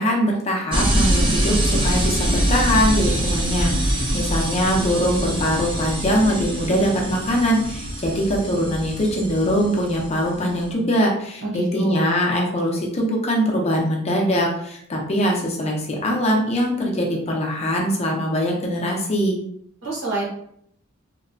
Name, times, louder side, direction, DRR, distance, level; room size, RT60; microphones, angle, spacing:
voice 1, 0.0-19.4, equal, 30° left, 0 dB, 0.5 m, -22 dB
sound 1, 0.7-10.7, right 1 dB, 25° right, 0.4 m, -24 dB
voice 2, 11.4-12.1 19.8-20.2, right 1 dB, 60° right, -4 dB, 1.0 m, -26 dB
2.9 x 2.1 x 2.5 m, 0.70 s
head